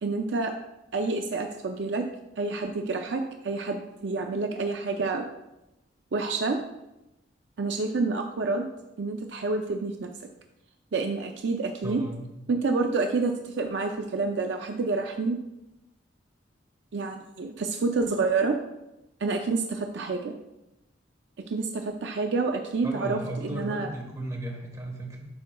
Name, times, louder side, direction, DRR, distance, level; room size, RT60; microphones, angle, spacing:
voice 1, 0.0-0.5 0.9-2.1 2.4-5.3 6.1-6.6 7.6-8.7 9.0-10.1 10.9-12.0 12.5-15.4 16.9-18.6 19.2-20.3 21.5-23.9, right 3 dB, 60° right, 4 dB, 0.4 m, -28 dB
voice 2, 11.8-12.3 22.8-25.3, right 1 dB, 20° right, 0 dB, 1.2 m, -35 dB
11.5 x 4.7 x 2.3 m, 0.92 s
head